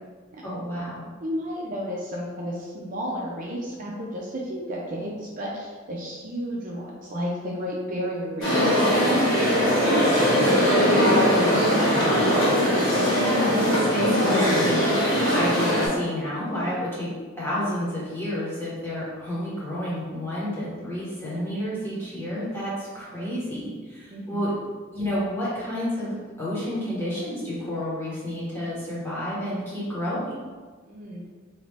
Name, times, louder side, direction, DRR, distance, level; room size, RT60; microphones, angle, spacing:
voice 1, 0.4-1.1 13.2-17.1 17.4-24.5 24.9-30.4, equal, 10° left, -9 dB, 1.2 m, -30 dB
voice 2, 1.2-12.3 24.1-24.6 30.9-31.2, equal, 45° right, -4 dB, 0.5 m, -32 dB
sound 1, 8.4-15.9, equal, 75° left, 1.5 m, -20 dB
3.1 x 2.6 x 3.3 m, 1.4 s
head